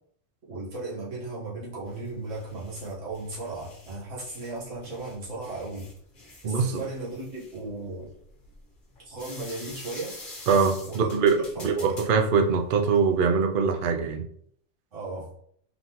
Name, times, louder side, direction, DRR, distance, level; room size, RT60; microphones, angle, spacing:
voice 1, 0.5-5.9 6.4-8.2 9.0-10.2 10.9-11.2 11.5-11.9 14.9-15.3, right 2 dB, 85° right, -7 dB, 1.6 m, -36 dB
sound 1, 1.9-13.2, left 2 dB, 45° left, 1.2 m, -46 dB
voice 2, 6.4-6.8 10.5-14.3, right 5 dB, 55° right, 4 dB, 0.7 m, -23 dB
4.0 x 3.5 x 2.9 m, 0.64 s
omnidirectional pair, 1.2 m